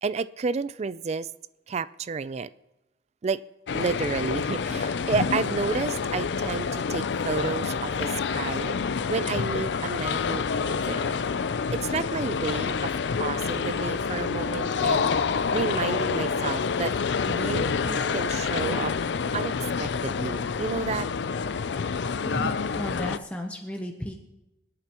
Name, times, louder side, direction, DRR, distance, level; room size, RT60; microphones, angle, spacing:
voice 1, 0.0-1.3 1.7-2.5 3.2-3.4 3.7-8.8 9.1-11.2 11.7-12.9 13.2-15.1 15.5-16.9 17.2-18.9 19.3-21.1, right 4 dB, 35° right, 16 dB, 0.3 m, -31 dB
sound 1, 3.7-23.2, left 5 dB, 70° left, 0.4 m, -28 dB
voice 2, 22.7-24.1, equal, 5° left, 2 dB, 0.8 m, -33 dB
26.0 x 8.7 x 3.0 m, 0.97 s
head